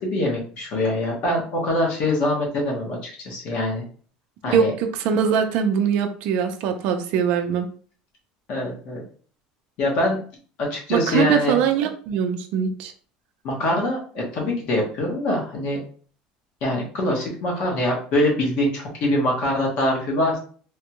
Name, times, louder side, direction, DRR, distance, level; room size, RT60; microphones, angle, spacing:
voice 1, 0.0-3.8 4.4-4.7 8.5-9.0 9.8-10.2 10.6-11.6 13.4-15.8 16.6-20.4, left 1 dB, 50° left, -2 dB, 1.1 m, -24 dB
voice 2, 4.5-7.7 10.9-12.9, right 7 dB, 55° right, 5 dB, 0.5 m, -22 dB
3.4 x 2.2 x 2.9 m, 0.43 s
cardioid pair, 165°, 3 cm